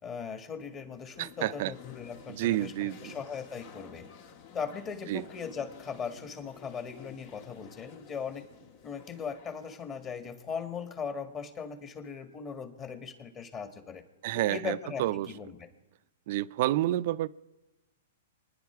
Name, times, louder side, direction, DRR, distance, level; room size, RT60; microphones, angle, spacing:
voice 1, 0.0-4.1 4.5-8.5 8.8-14.0 14.5-15.7, left 6 dB, 30° left, 2.0 m, -39 dB
sound 1, 1.0-11.0, left 8 dB, 50° left, 1.4 m, -52 dB
voice 2, 1.2-1.7 2.3-3.2 5.1-5.2 14.2-15.3 16.3-17.3, right 15 dB, 55° right, 0.5 m, -29 dB
28.5 x 10.5 x 4.7 m
hypercardioid pair, 125°, 0 cm